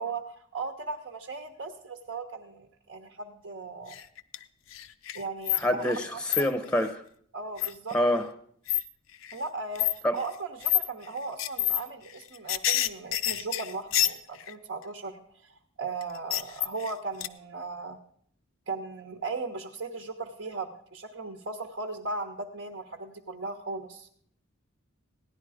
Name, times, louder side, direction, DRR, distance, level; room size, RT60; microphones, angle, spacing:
voice 1, 0.0-4.0 5.1-6.4 7.3-8.0 9.3-18.0 18.7-24.1, right 3 dB, 70° right, 1.0 m, -37 dB
sound 1, 3.9-4.4 4.7-6.0 6.3-6.4 7.6-7.9 8.7-8.8 9.2-9.3 9.7-9.9 10.6-10.9 11.4-11.8 12.1-14.5 16.0-16.9 17.2-17.3, left 13 dB, 75° left, 0.5 m, -27 dB
voice 2, 5.6-7.0 7.9-8.3 10.0-10.2, left 1 dB, 5° left, 0.7 m, -26 dB
16.0 x 10.5 x 4.9 m
head